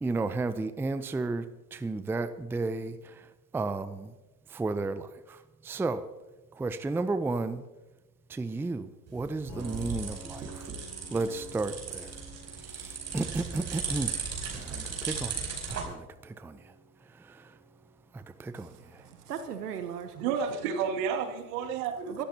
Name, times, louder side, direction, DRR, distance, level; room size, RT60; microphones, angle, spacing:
voice 1, 0.0-3.3 3.5-4.1 4.5-6.1 6.5-7.6 8.3-10.7 11.1-12.2 12.7-14.2 14.5-15.4 15.7-16.7 17.2-17.5 18.1-19.0, right 3 dB, 5° right, 12 dB, 0.5 m, -33 dB
sound 1, 9.1-15.8, right 5 dB, 35° right, 5.1 m, -37 dB
Piano, 9.5-19.1, right 2 dB, 45° left, 4.8 m, -51 dB
voice 2, 18.5-20.3 22.1-22.2, right 8 dB, 85° right, 8 dB, 1.2 m, -39 dB
voice 3, 20.1-22.3, right 6 dB, 60° right, 4 dB, 2.5 m, -31 dB
24.5 x 13.5 x 2.9 m, 1.1 s
hypercardioid pair, 85°, 45 cm